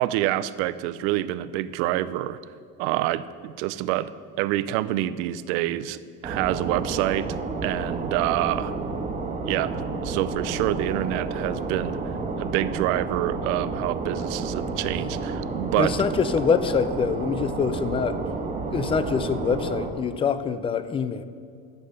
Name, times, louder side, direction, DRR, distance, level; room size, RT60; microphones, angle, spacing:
voice 1, 0.0-2.4 2.8-4.1 4.4-8.7 9.4-9.7 10.0-12.0 12.4-15.9, right 15 dB, 80° right, 16 dB, 0.6 m, -27 dB
sound 1, 6.2-19.9, right 3 dB, 20° right, 1.4 m, -30 dB
voice 2, 15.8-18.2 18.7-21.2, left 6 dB, 15° left, 13 dB, 0.4 m, -25 dB
11.5 x 7.7 x 6.7 m, 2.3 s
cardioid pair, 145°, 35 cm